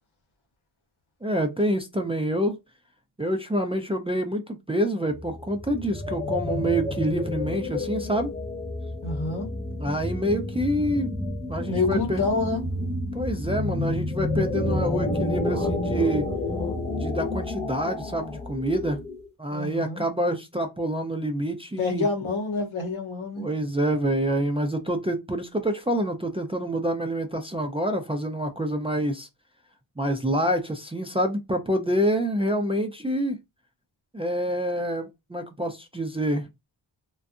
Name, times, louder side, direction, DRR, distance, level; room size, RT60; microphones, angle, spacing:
voice 1, 1.2-2.6 3.2-8.3 9.8-12.2 13.1-16.3 16.9-19.0 19.4-22.1 23.4-29.3 30.0-33.4 34.1-36.5, equal, 15° right, 0.4 m, -27 dB
sound 1, 5.1-19.3, left 2 dB, 15° left, 0.8 m, -30 dB
voice 2, 9.0-9.5 11.7-12.7 19.5-20.0 21.8-23.5, left 3 dB, 75° left, 0.9 m, -27 dB
2.5 x 2.3 x 2.4 m
cardioid pair, 60°, 48 cm